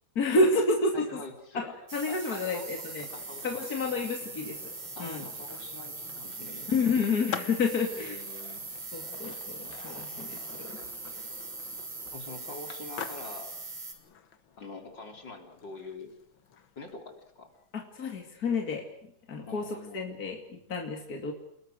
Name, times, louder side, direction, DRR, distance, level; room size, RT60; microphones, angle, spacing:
voice 1, 0.1-1.3 1.5-3.1 3.4-4.7 5.0-5.2 6.7-8.2 8.9-10.8 17.7-21.3, left 3 dB, 50° left, 2 dB, 3.1 m, -30 dB
voice 2, 0.9-1.7 2.1-2.8 3.1-3.6 5.0-6.7 7.9-8.6 12.1-13.5 14.6-16.1 16.8-17.5 19.5-20.0, left 3 dB, 70° left, 4 dB, 4.4 m, -44 dB
sound 1, 1.9-13.9, right 3 dB, 90° right, 4.9 m, -41 dB
Skateboard, 2.0-17.8, left 7 dB, 85° left, 2.2 m, -47 dB
30.0 x 21.5 x 6.6 m, 0.70 s
omnidirectional pair, 2.1 m